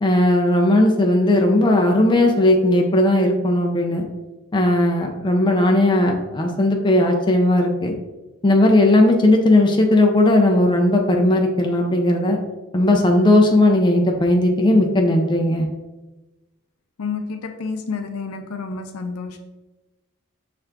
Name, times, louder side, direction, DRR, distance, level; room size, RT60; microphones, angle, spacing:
voice 1, 0.0-4.0 4.5-7.9 8.4-12.4 12.7-15.7, left 1 dB, 20° left, 1 dB, 0.4 m, -17 dB
voice 2, 17.0-19.4, left 4 dB, 85° left, 6 dB, 0.5 m, -29 dB
5.8 x 2.5 x 3.3 m, 1.1 s
head